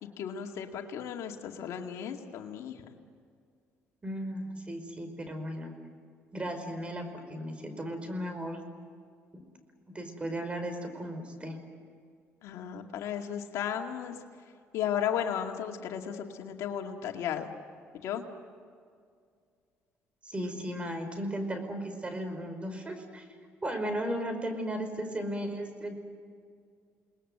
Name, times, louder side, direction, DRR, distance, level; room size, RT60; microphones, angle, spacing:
voice 1, 0.0-2.8 12.4-14.2 14.7-17.5 17.9-18.2, left 9 dB, 80° left, 3 dB, 2.2 m, -35 dB
voice 2, 4.0-5.7 6.3-8.6 9.9-11.6 20.2-23.3 23.6-25.9, equal, 25° right, 7 dB, 5.1 m, -35 dB
29.0 x 20.5 x 8.0 m, 2.2 s
cardioid pair, 90°, 5 cm